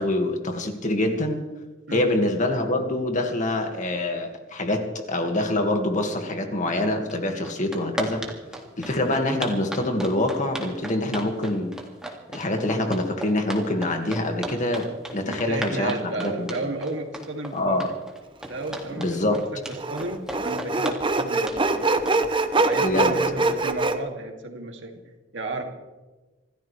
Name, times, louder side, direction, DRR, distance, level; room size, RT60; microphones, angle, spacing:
voice 1, 0.0-1.4 1.9-8.2 8.8-11.7 12.3-16.6 17.5-17.9 19.0-19.4 22.8-23.2, left 1 dB, 40° left, 4 dB, 2.0 m, -25 dB
sound 1, 7.1-7.2 7.4-23.0, right 1 dB, 5° right, 2.2 m, -35 dB
voice 2, 15.2-17.8 18.5-19.6 19.9-21.9 22.5-24.9 25.3-25.6, right 2 dB, 70° right, 2 dB, 2.5 m, -33 dB
Sawing, 18.6-18.7 19.8-24.0, right 3 dB, 25° right, 0.9 m, -23 dB
27.0 x 14.0 x 3.4 m, 1.2 s
head